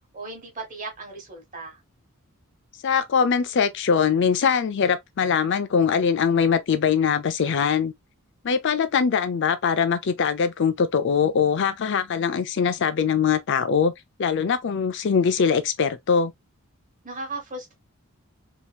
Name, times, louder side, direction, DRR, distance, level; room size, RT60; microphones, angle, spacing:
voice 1, 0.1-1.8 17.0-17.7, right 3 dB, 35° right, 1.4 m, -36 dB
voice 2, 2.8-7.9 8.4-13.9 14.2-16.3, left 6 dB, 55° left, 0.4 m, -22 dB
3.5 x 2.8 x 2.3 m
head